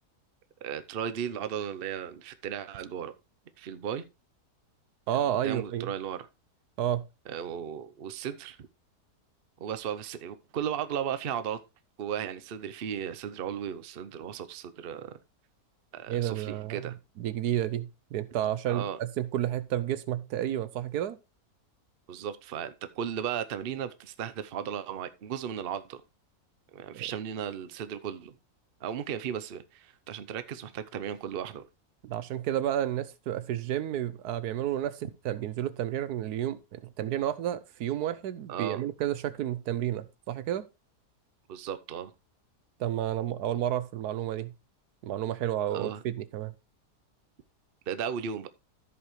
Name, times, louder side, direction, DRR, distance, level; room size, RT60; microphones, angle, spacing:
voice 1, 0.6-3.1 3.6-4.0 5.3-6.3 7.3-8.7 9.6-11.6 12.0-15.2 15.9-16.9 18.7-19.0 22.1-26.0 26.7-28.4 28.8-31.6 38.5-38.8 41.5-42.1 45.7-46.0 47.9-48.5, right 8 dB, 50° right, 0.8 m, -35 dB
voice 2, 5.1-5.9 6.8-7.0 16.1-21.2 26.9-27.1 32.0-40.6 42.8-44.5 45.0-46.5, right 11 dB, 80° right, 1.2 m, -31 dB
14.0 x 5.2 x 3.1 m
omnidirectional pair, 1.7 m